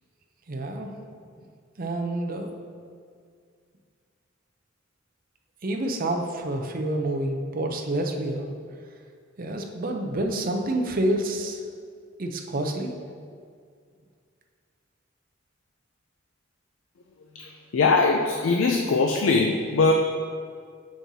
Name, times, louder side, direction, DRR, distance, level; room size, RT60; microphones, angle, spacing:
voice 1, 0.5-0.9 1.8-2.5 5.6-8.5 9.4-11.6 12.2-12.9, right 1 dB, 45° right, 3 dB, 0.6 m, -28 dB
voice 2, 17.2-19.9, left 4 dB, 75° left, 3 dB, 0.4 m, -22 dB
7.6 x 6.2 x 2.8 m, 2.1 s
head